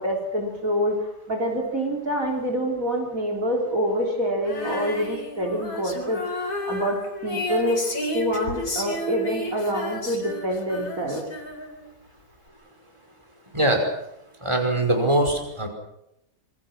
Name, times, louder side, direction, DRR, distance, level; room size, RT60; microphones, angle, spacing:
voice 1, 0.0-11.3, equal, 55° right, 0 dB, 4.3 m, -26 dB
Female singing, 4.4-11.9, left 1 dB, 65° left, 4.6 m, -32 dB
voice 2, 14.4-15.7, right 1 dB, 15° right, 3 dB, 5.2 m, -22 dB
27.0 x 24.0 x 6.1 m, 0.83 s
omnidirectional pair, 1.8 m